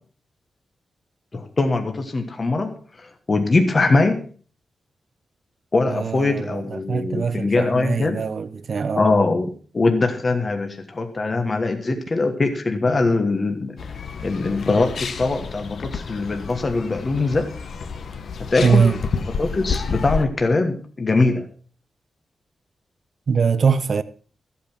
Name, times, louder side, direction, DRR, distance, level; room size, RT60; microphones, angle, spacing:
voice 1, 1.3-2.7 3.3-4.2 5.7-8.2 9.0-13.8 14.2-17.5 18.5-18.9 19.4-21.4, left 3 dB, 30° left, 1.3 m, -21 dB
voice 2, 5.9-9.0 11.9-12.0 18.6-19.0 23.3-24.0, right 6 dB, 45° right, 0.9 m, -22 dB
sound 1, 13.8-20.2, left 5 dB, 60° left, 1.1 m, -30 dB
14.0 x 8.5 x 6.0 m
wide cardioid pair, 165°, 0 cm